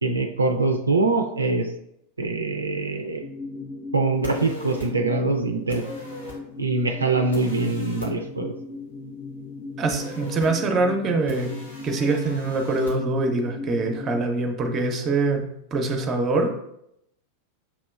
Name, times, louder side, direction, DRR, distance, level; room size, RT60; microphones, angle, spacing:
voice 1, 0.0-1.7 2.2-3.2 3.9-5.8 6.6-8.5, right 3 dB, 75° right, 4 dB, 0.3 m, -23 dB
sound 1, 3.2-14.2, left 3 dB, 45° left, 0.5 m, -38 dB
sound 2, 4.2-4.9 5.7-6.4 7.3-8.1 9.9-10.5 11.3-12.9, equal, 80° left, 1.7 m, -40 dB
voice 2, 9.8-11.5 11.8-15.4 15.7-16.6, right 3 dB, 25° right, 4 dB, 0.7 m, -24 dB
7.1 x 2.9 x 2.2 m, 0.79 s
figure-of-eight pair, 90°, 0 cm